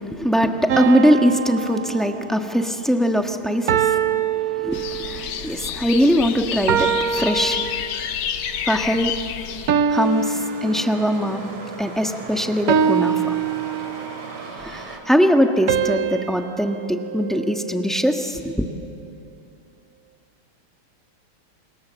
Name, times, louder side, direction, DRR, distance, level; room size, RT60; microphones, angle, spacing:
voice 1, 0.0-3.9 4.4-7.7 8.6-9.1 9.9-11.4 11.8-13.4 14.6-18.7, equal, ahead, 4 dB, 0.8 m, -21 dB
sound 1, 0.7-2.6 3.7-5.3 6.7-8.3 9.7-11.4 12.7-14.3 15.7-18.0, right 7 dB, 60° right, 1.0 m, -24 dB
sound 2, 4.7-9.7, left 9 dB, 85° left, 1.9 m, -29 dB
sound 3, 9.9-15.0, right 3 dB, 85° right, 3.5 m, -38 dB
29.0 x 26.5 x 7.5 m, 2.7 s
omnidirectional pair, 2.3 m